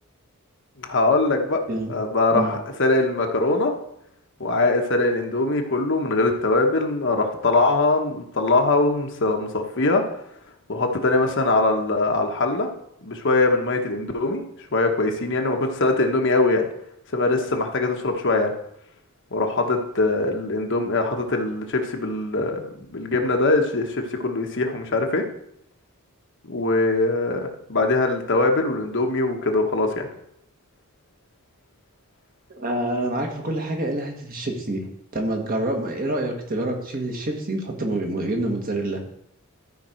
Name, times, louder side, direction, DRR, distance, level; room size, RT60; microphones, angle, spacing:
voice 1, 0.8-1.6 1.9-3.7 4.4-10.0 10.7-12.7 13.0-14.4 14.7-16.7 17.1-18.5 19.3-22.6 22.9-25.2 26.5-30.1, left 2 dB, 55° left, 4 dB, 1.1 m, -22 dB
voice 2, 32.5-34.8 35.1-39.0, right 1 dB, 40° right, 2 dB, 1.6 m, -27 dB
13.0 x 5.1 x 4.5 m, 0.75 s
head